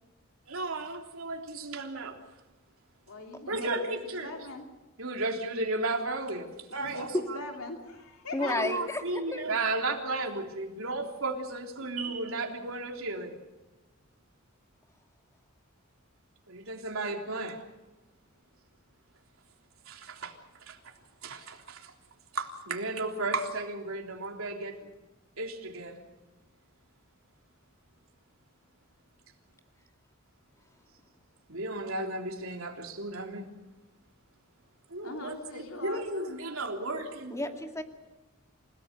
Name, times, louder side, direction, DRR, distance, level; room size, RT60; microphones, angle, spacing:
voice 1, 0.5-2.2 3.5-4.3 5.0-7.1 8.4-13.4 16.5-17.6 19.9-20.3 20.6-20.8 21.2-21.9 22.3-24.8 25.4-26.0 31.5-33.5 34.9-37.5, right 2 dB, 75° right, 2 dB, 3.5 m, -34 dB
voice 2, 3.1-3.7 4.2-4.6 6.8-8.5 35.0-36.3, left 2 dB, 80° left, 2 dB, 3.0 m, -41 dB
voice 3, 8.3-9.4 37.3-37.8, left 1 dB, 15° left, 4 dB, 2.4 m, -31 dB
28.5 x 18.0 x 6.8 m, 1.1 s
head